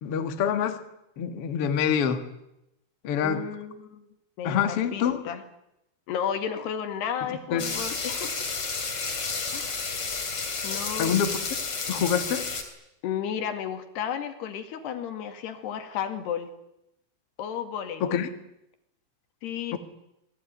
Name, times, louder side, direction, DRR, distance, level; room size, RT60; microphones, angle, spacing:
voice 1, 0.0-0.8 1.2-2.2 3.0-3.4 4.4-5.2 7.5-7.7 11.0-11.4 11.9-12.5 18.0-18.3 19.7-19.8, left 8 dB, 90° left, 8 dB, 1.2 m, -26 dB
voice 2, 3.2-4.0 4.4-5.4 6.1-8.5 9.5-9.8 10.6-11.1 13.0-16.5 17.4-18.2 19.4-19.8, left 8 dB, 60° left, 8 dB, 3.9 m, -33 dB
sound 1, 7.6-12.6, left 4 dB, 30° left, 3.6 m, -31 dB
27.0 x 20.5 x 9.6 m, 0.84 s
omnidirectional pair, 6.0 m